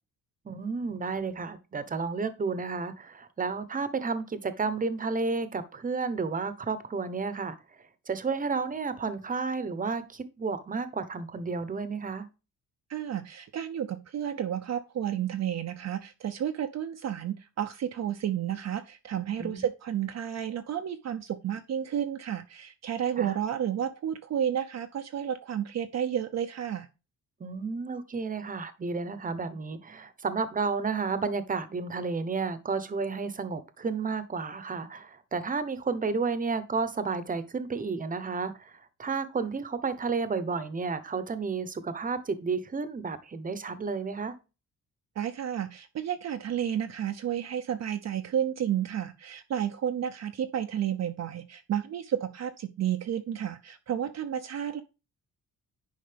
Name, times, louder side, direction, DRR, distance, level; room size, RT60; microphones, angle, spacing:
voice 1, 0.4-7.6 8.1-12.3 19.4-19.6 23.2-23.3 27.4-38.7 39.0-44.3, right 4 dB, 25° right, 0.9 m, -32 dB
voice 2, 12.9-26.9 45.2-54.8, right 9 dB, 50° right, 0.6 m, -31 dB
10.5 x 5.2 x 3.4 m
cardioid pair, 140°, 35 cm